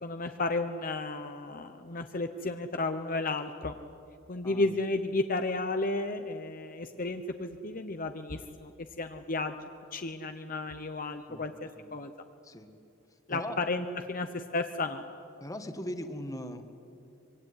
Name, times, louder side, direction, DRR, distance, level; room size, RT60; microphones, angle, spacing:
voice 1, 0.0-3.7 4.3-8.7 9.0-12.1 13.3-15.0, left 2 dB, 40° left, 7 dB, 0.9 m, -33 dB
voice 2, 15.4-16.6, left 1 dB, 15° left, 7 dB, 1.6 m, -39 dB
25.0 x 24.0 x 9.8 m, 2.7 s
head